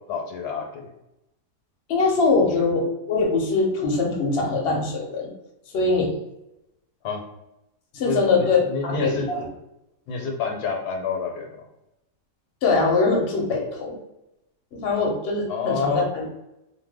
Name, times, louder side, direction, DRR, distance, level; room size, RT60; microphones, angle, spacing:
voice 1, 0.1-0.9 7.0-7.2 8.0-9.3 10.1-11.7 15.5-16.1, left 5 dB, 75° left, 1 dB, 1.1 m, -28 dB
voice 2, 1.9-5.3 5.7-6.1 7.9-9.4 12.6-14.0 14.7-16.2, left 3 dB, 55° left, -1 dB, 0.8 m, -22 dB
2.6 x 2.2 x 3.4 m, 0.89 s
omnidirectional pair, 1.7 m